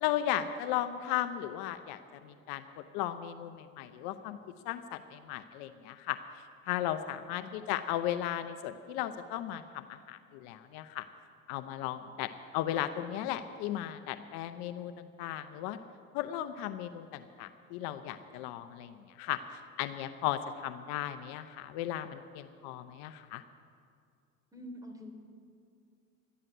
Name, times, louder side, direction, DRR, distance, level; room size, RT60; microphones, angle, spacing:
voice 1, 0.0-4.4 4.6-11.1 11.5-15.8 16.1-23.4, left 12 dB, 65° left, 10 dB, 0.8 m, -36 dB
voice 2, 24.5-25.1, left 1 dB, 10° right, 3 dB, 3.2 m, -45 dB
12.5 x 11.0 x 7.8 m, 2.3 s
hypercardioid pair, 80°, 40 cm